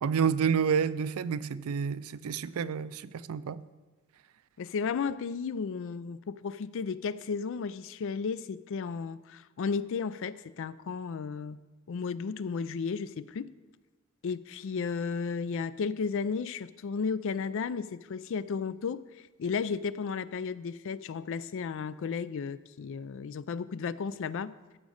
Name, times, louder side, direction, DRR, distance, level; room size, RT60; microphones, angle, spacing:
voice 1, 0.0-3.6, right 7 dB, 85° right, 0.4 m, -29 dB
voice 2, 4.6-11.6 11.9-13.5 14.2-24.5, left 5 dB, 65° left, 0.4 m, -34 dB
13.5 x 5.2 x 6.4 m
head